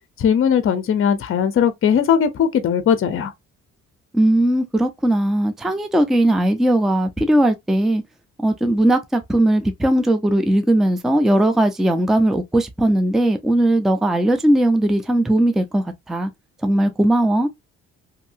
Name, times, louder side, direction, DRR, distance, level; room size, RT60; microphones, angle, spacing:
voice 1, 0.2-3.3, left 8 dB, 45° left, 0.6 m, -18 dB
voice 2, 4.1-8.0 8.4-16.3 16.6-17.5, right 1 dB, ahead, 0.4 m, -18 dB
2.8 x 2.6 x 2.6 m
cardioid pair, 90°, 30 cm